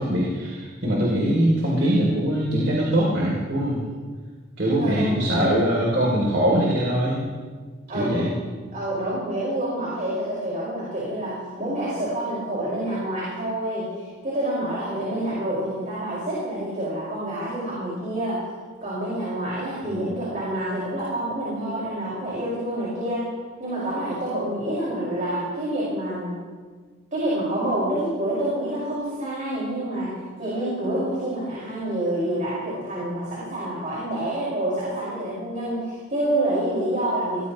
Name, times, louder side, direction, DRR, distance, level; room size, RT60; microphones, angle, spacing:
voice 1, 0.0-3.8 4.6-7.3 7.9-8.3 19.9-20.0, right 1 dB, 55° right, -4 dB, 3.2 m, -22 dB
voice 2, 4.8-5.6 7.9-8.3 8.7-18.4 18.8-23.3 23.6-26.3 27.1-37.5, right 1 dB, 40° right, -8 dB, 5.6 m, -27 dB
22.0 x 19.5 x 3.2 m, 1.5 s
head